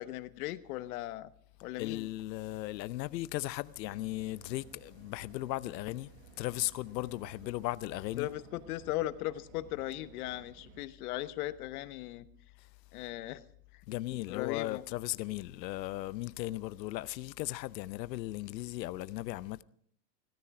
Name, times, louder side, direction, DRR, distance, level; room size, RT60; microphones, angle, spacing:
voice 1, 0.0-1.3 1.6-2.1 8.2-12.3 12.9-13.4 14.1-14.8, left 15 dB, 60° left, 1.1 m, -38 dB
voice 2, 1.8-6.1 6.4-8.3 13.9-19.6, left 17 dB, 85° left, 0.7 m, -37 dB
sound 1, 3.8-10.9, right 9 dB, 40° right, 1.1 m, -57 dB
17.5 x 13.5 x 4.8 m
supercardioid pair, 150°, 49 cm